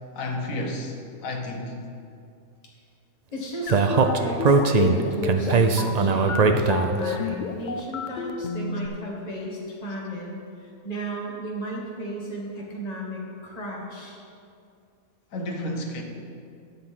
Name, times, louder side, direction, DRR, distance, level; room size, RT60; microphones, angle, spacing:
voice 1, 0.1-1.8 15.3-16.0, left 1 dB, 70° left, 2 dB, 1.4 m, -31 dB
voice 2, 3.3-14.2, right 1 dB, 30° left, -3 dB, 1.6 m, -35 dB
sound 1, 3.7-8.9, left 6 dB, 85° left, 0.4 m, -30 dB
Speech, 3.7-7.1, right 4 dB, 80° right, 0.3 m, -20 dB
12.0 x 4.3 x 7.5 m, 2.5 s
omnidirectional pair, 1.5 m